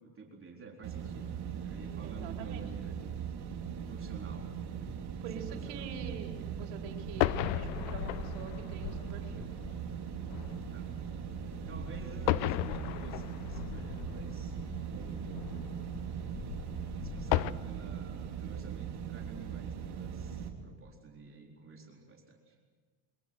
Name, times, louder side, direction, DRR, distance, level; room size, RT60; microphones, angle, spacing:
voice 1, 0.0-3.1 3.9-4.5 4.8-4.9 5.3-5.9 10.7-10.9 11.4-14.6 14.9-15.8 16.9-22.6, right 4 dB, 25° right, 0 dB, 4.1 m, -50 dB
sound 1, 0.8-20.5, right 8 dB, 50° right, 3.4 m, -40 dB
voice 2, 2.0-2.6 5.2-9.5, right 6 dB, 80° right, 2 dB, 4.4 m, -45 dB
sound 2, 7.1-17.5, left 17 dB, 85° left, 0.8 m, -36 dB
24.0 x 21.0 x 7.9 m, 1.5 s
supercardioid pair, 115°, 49 cm